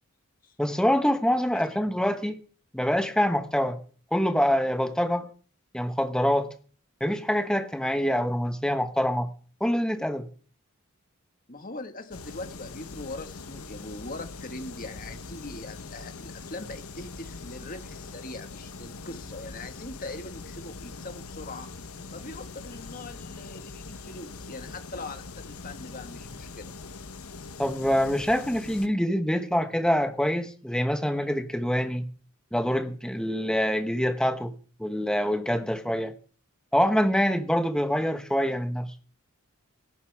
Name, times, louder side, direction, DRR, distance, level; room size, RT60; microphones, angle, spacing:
voice 1, 0.6-2.4 2.7-3.8 4.1-5.3 5.7-6.5 7.0-9.3 9.6-10.3 27.6-32.0 32.5-34.5 34.8-36.1 36.7-38.9, equal, 5° left, 1.2 m, -25 dB
voice 2, 11.5-21.7 22.1-26.7, left 2 dB, 40° left, 1.8 m, -41 dB
sound 1, 12.1-28.9, left 3 dB, 75° left, 1.1 m, -42 dB
17.5 x 15.0 x 3.6 m
head